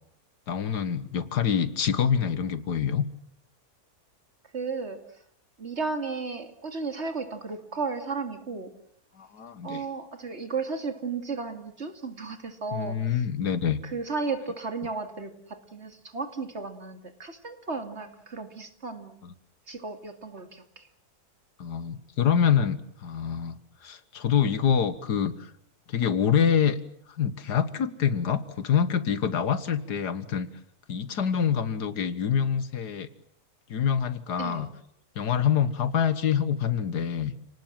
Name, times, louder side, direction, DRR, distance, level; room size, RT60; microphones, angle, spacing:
voice 1, 0.5-3.1 9.2-9.8 12.7-13.8 19.2-19.3 21.6-23.5 23.8-25.5 25.9-26.8 27.2-30.5 30.9-33.1 33.7-34.7 35.2-37.3, left 7 dB, 85° left, 14 dB, 1.9 m, -26 dB
voice 2, 4.5-5.0 5.6-8.7 9.6-13.2 13.8-19.2 19.7-20.9 34.4-34.7, right 4 dB, 45° right, 8 dB, 2.6 m, -34 dB
30.0 x 19.0 x 7.6 m, 0.66 s
omnidirectional pair, 1.7 m